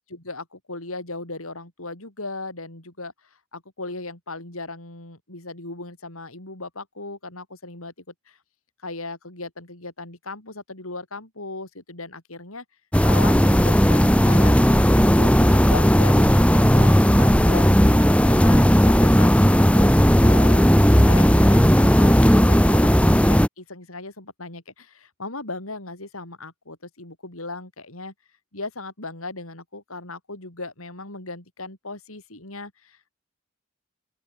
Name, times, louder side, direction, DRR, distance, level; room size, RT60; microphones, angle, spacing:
voice 1, 0.0-3.1 3.5-7.9 8.3-8.4 8.8-12.6 13.0-14.6 14.9-16.9 17.2-17.8 18.2-20.7 21.0-23.0 23.2-28.1 28.5-33.1, left 3 dB, 85° left, 6.6 m, -37 dB
sound 1, 12.9-23.5, equal, 5° left, 1.6 m, -16 dB
open air
head